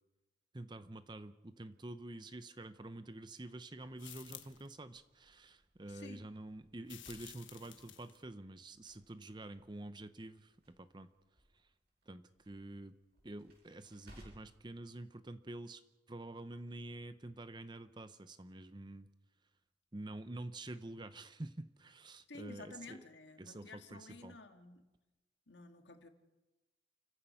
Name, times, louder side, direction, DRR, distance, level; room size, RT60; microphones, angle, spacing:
voice 1, 0.5-11.1 12.1-13.0 13.2-15.8 16.1-19.1 19.9-23.0 23.4-24.4, right 2 dB, 25° right, 11 dB, 0.7 m, -48 dB
Crackle, 3.7-14.6, equal, 55° right, 7.3 m, -65 dB
sound 1, 4.0-4.7 6.8-8.2, left 12 dB, 90° left, 1.4 m, -53 dB
voice 2, 5.9-6.3 22.3-24.8 25.5-26.1, left 3 dB, 70° left, 6 dB, 2.1 m, -52 dB
29.5 x 15.5 x 5.7 m, 1.1 s
head